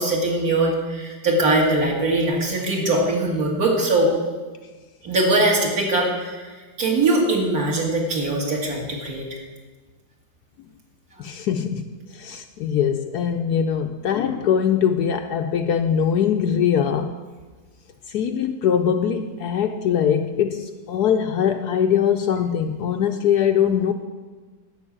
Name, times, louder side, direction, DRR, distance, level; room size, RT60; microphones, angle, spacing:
voice 1, 0.0-4.1 5.0-6.4 6.8-9.3, right 2 dB, 55° right, -1 dB, 2.6 m, -21 dB
voice 2, 11.2-17.2 18.1-23.9, left 8 dB, 70° left, 7 dB, 1.0 m, -22 dB
11.5 x 5.7 x 8.7 m, 1.4 s
omnidirectional pair, 2.0 m